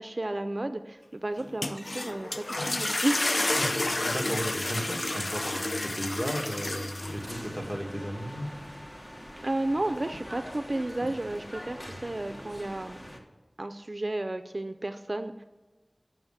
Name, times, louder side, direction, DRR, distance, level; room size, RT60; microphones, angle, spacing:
voice 1, 0.0-3.2 9.4-13.0 13.6-15.4, right 1 dB, 55° right, 9 dB, 0.4 m, -32 dB
sound 1, 1.4-7.4, left 2 dB, 55° left, 0.4 m, -30 dB
voice 2, 3.6-8.5, equal, 5° left, 0 dB, 2.0 m, -35 dB
Bell, 5.9-7.6 9.3-9.6, equal, 80° left, 1.6 m, -51 dB
sound 2, 7.0-13.2, equal, 20° left, 1.3 m, -43 dB
7.8 x 6.2 x 7.3 m, 1.2 s
wide cardioid pair, 45°, 0 cm